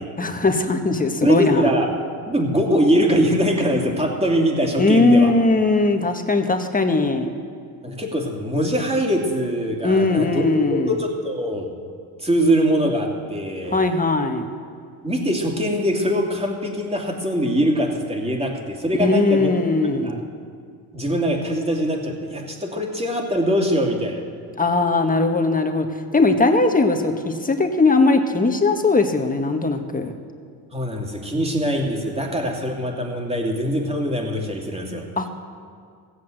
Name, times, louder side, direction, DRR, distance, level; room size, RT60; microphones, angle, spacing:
voice 1, 0.2-1.7 4.8-7.3 9.8-11.0 13.7-14.4 19.0-20.2 24.6-25.9 26.1-30.1 35.2-35.3, left 3 dB, 20° left, 5 dB, 1.4 m, -19 dB
voice 2, 1.2-1.9 2.3-5.3 7.8-10.4 10.7-11.7 12.2-13.8 15.0-19.5 19.8-20.2 20.9-24.2 30.7-35.1, equal, 15° right, 1 dB, 2.6 m, -22 dB
16.0 x 8.1 x 7.8 m, 2.2 s
cardioid pair, 85°, 42 cm